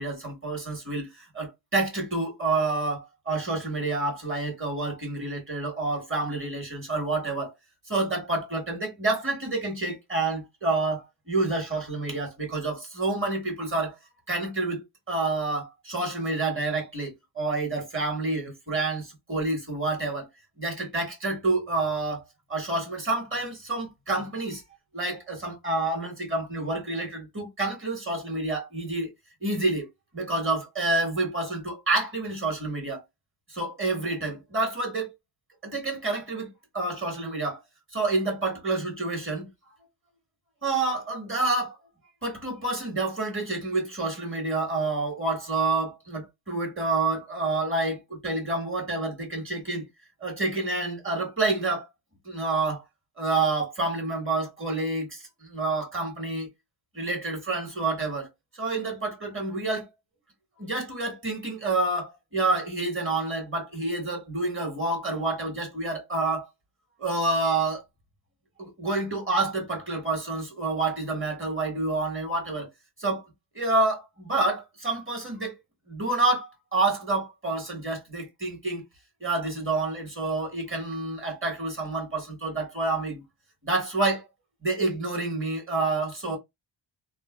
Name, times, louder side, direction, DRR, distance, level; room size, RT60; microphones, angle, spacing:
voice 1, 0.0-7.5 7.9-14.0 14.3-20.3 20.6-22.2 22.5-24.6 24.9-29.1 29.4-29.9 30.1-33.0 33.5-35.1 35.6-36.5 36.7-37.6 37.9-39.5 40.6-41.8 42.2-49.9 50.2-51.9 52.2-52.8 53.2-56.5 56.9-59.9 60.6-66.5 67.0-67.8 68.6-72.7 73.0-73.2 73.5-75.5 75.9-78.8 79.2-83.2 83.6-84.2 84.6-86.4, right 2 dB, 25° right, 1.4 m, -28 dB
3.1 x 2.2 x 2.3 m
cardioid pair, 85°, 45 cm